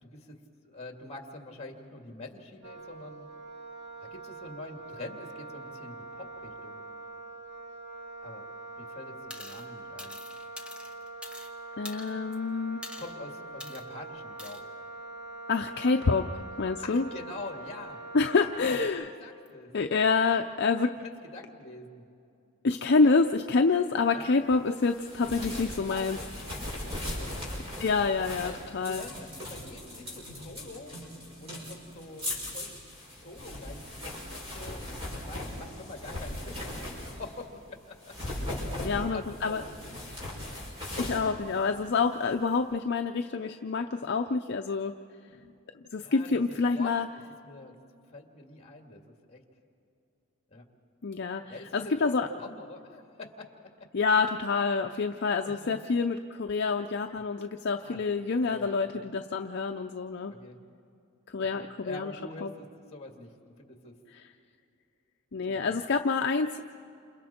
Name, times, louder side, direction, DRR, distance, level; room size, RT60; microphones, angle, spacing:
voice 1, 0.0-3.3 4.0-6.8 8.2-8.5 8.8-10.2 13.0-14.6 16.8-18.0 18.3-18.8 19.0-19.7 20.3-20.5 21.0-22.0 24.1-24.3 25.2-25.6 25.9-27.4 28.2-28.6 28.8-31.0 31.4-32.8 33.2-34.8 35.2-40.2 46.0-46.4 46.7-46.9 47.4-47.7 48.1-49.4 50.5-50.7 51.5-53.5 53.8-53.9 55.4-55.8 57.8-58.0 58.4-59.0 60.3-60.6 61.5-64.0 65.4-65.8, left 2 dB, 30° left, 3 dB, 2.3 m, -45 dB
Wind instrument woodwind instrument, 2.6-18.9, right 2 dB, 55° right, 3.5 m, -44 dB
sound 1, 9.3-9.6 10.0-11.5 11.8-12.3 12.8-13.1 13.6-13.8 14.4-14.6, left 1 dB, 5° right, 1.4 m, -44 dB
voice 2, 11.8-12.8 15.5-17.1 18.1-19.1 19.7-20.9 22.6-26.2 27.8-29.0 38.8-39.6 41.0-44.9 45.9-47.1 51.0-52.3 53.9-60.3 61.3-62.1 62.4-62.5 64.1-64.3 65.3-66.6, left 4 dB, 50° left, 5 dB, 0.6 m, -27 dB
sound 2, 24.8-37.4 37.9-42.3, left 1 dB, 30° right, 6.7 m, -39 dB
29.0 x 28.0 x 4.4 m, 2.6 s
head